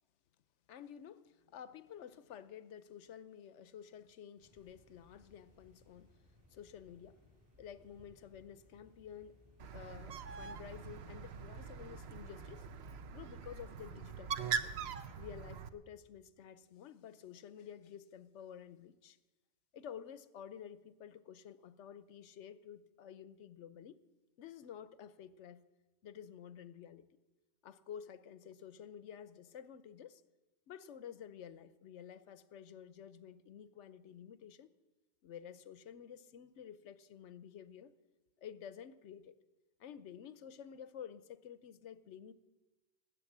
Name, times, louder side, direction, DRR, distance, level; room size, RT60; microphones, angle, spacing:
voice 1, 0.7-6.2 6.5-7.2 7.6-9.4 9.7-12.7 13.1-14.7 15.2-19.2 19.7-24.0 24.4-25.6 26.0-27.1 27.6-30.2 30.7-34.7 35.2-37.9 38.4-39.3 39.8-42.3, left 8 dB, 85° left, 1.0 m, -51 dB
sound 1, 4.4-13.8, left 1 dB, 35° right, 5.8 m, -66 dB
Bird, 9.6-15.7, right 6 dB, 65° right, 0.9 m, -42 dB
19.0 x 8.6 x 7.2 m
omnidirectional pair, 1.2 m